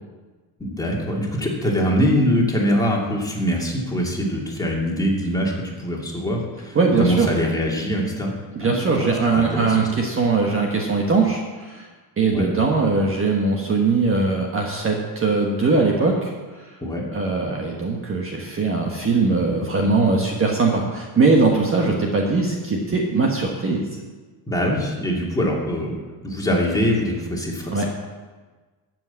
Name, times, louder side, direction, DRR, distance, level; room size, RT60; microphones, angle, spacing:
voice 1, 0.6-8.3 8.6-9.8 12.3-12.5 16.8-17.0 24.5-25.9 26.2-27.9, equal, 10° left, -3 dB, 2.5 m, -23 dB
voice 2, 6.7-7.3 8.5-11.9 12.2-16.8 17.1-23.8 27.7-27.9, right 3 dB, 30° right, 0 dB, 1.4 m, -21 dB
13.0 x 6.2 x 8.3 m, 1.3 s
cardioid pair, 140°, 46 cm